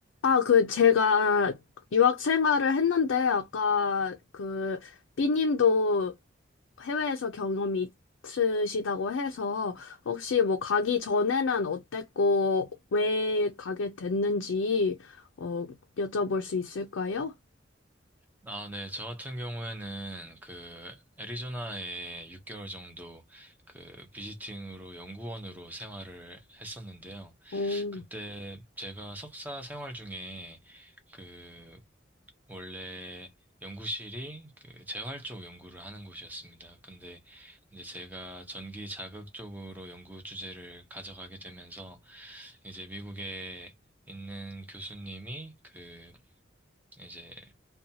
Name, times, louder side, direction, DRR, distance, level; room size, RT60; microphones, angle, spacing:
voice 1, 0.2-1.6 1.9-6.1 6.8-7.9 8.2-15.7 16.0-17.3 27.5-28.0, left 5 dB, 80° left, 0.4 m, -26 dB
voice 2, 18.4-31.8 32.5-33.3 33.6-43.7 44.1-46.2 46.9-47.5, right 1 dB, 10° right, 0.7 m, -41 dB
2.6 x 2.2 x 2.7 m
head